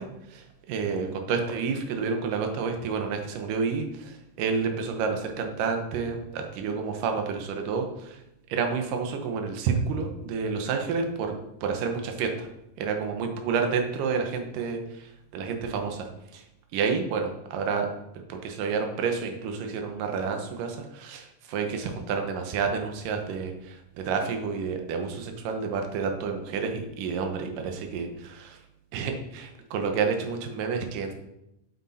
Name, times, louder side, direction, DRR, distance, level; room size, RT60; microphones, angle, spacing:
voice 1, 0.0-8.2 8.5-11.3 11.6-12.5 12.8-16.4 16.7-18.0 18.3-28.6 28.9-31.1, right 5 dB, 75° right, 4 dB, 2.7 m, -29 dB
8.5 x 8.5 x 4.2 m, 0.85 s
omnidirectional pair, 4.0 m